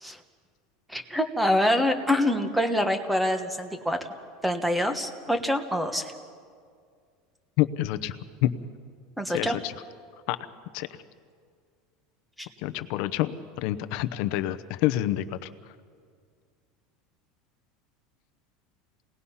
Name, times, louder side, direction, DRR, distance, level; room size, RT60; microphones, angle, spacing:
voice 1, 0.9-4.0 4.4-6.1 9.2-9.6 12.4-12.5, left 1 dB, 5° right, 8 dB, 1.2 m, -25 dB
voice 2, 7.6-8.2 8.4-8.5 9.3-9.7 10.3-10.4 10.7-10.9 12.6-13.3 13.6-15.2, left 15 dB, 50° left, 10 dB, 0.8 m, -27 dB
29.0 x 19.0 x 5.7 m, 2.1 s
supercardioid pair, 175°, 0 cm